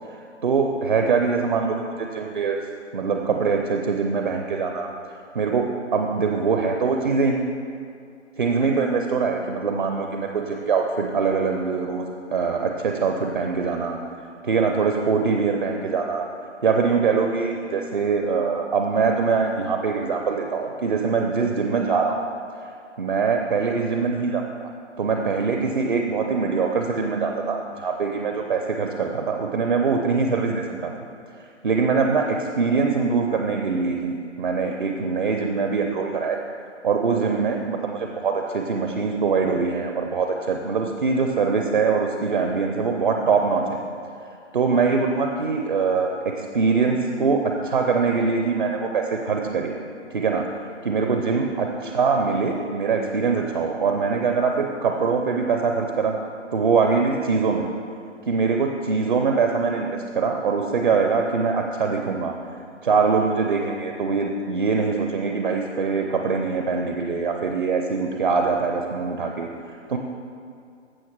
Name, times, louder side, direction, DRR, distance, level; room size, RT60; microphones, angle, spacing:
voice 1, 0.1-2.6 2.9-4.9 5.3-7.4 8.4-14.0 14.4-16.2 16.6-22.2 23.0-24.4 25.0-30.9 31.6-36.4 36.8-43.8 44.5-49.7 50.1-50.5 50.8-56.2 56.5-57.7 58.3-62.3 62.8-69.5 69.9-70.0, right 5 dB, 40° right, 3 dB, 0.7 m, -23 dB
15.5 x 5.8 x 4.6 m, 2.3 s
figure-of-eight pair, 155°, 37 cm